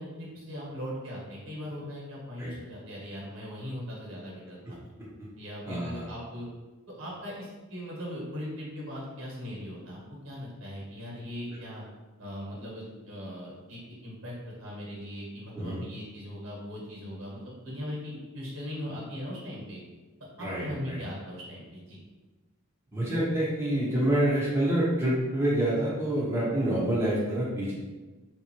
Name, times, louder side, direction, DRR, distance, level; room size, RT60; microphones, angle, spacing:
voice 1, 0.0-4.8 5.4-6.5 7.0-11.8 12.2-19.8 20.4-22.0, equal, 70° right, -4 dB, 1.5 m, -39 dB
voice 2, 5.7-6.1 15.5-15.8 20.4-21.0 22.9-27.7, right 1 dB, 10° right, -8 dB, 0.8 m, -27 dB
3.5 x 2.8 x 4.4 m, 1.2 s
head